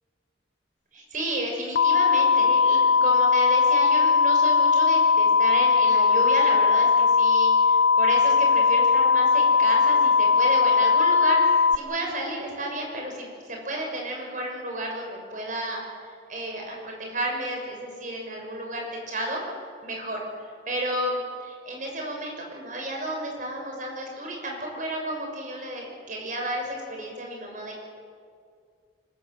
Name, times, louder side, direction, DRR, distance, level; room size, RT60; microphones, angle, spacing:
voice 1, 0.9-15.8 16.3-20.2 20.7-27.8, right 1 dB, 45° right, 0 dB, 6.6 m, -32 dB
sound 1, 1.8-11.8, left 5 dB, 70° left, 0.5 m, -19 dB
24.5 x 20.0 x 8.1 m, 2.2 s
head